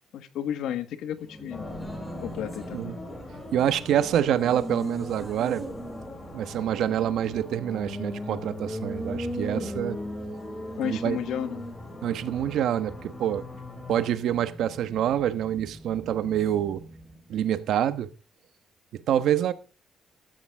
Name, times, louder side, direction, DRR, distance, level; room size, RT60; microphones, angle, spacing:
voice 1, 0.1-1.7 2.2-2.9 10.8-11.6, left 9 dB, 85° left, 1.4 m, -32 dB
Race car auto racing, 1.1-17.3, equal, ahead, 3.8 m, -39 dB
sound 1, 1.5-14.1, left 2 dB, 30° left, 6.5 m, -42 dB
voice 2, 3.5-5.6 6.3-10.0 10.8-11.2 12.0-13.5 13.9-16.8 17.3-18.1 18.9-19.5, right 10 dB, 75° right, 1.1 m, -26 dB
14.0 x 13.0 x 3.5 m
cardioid pair, 150°, 0 cm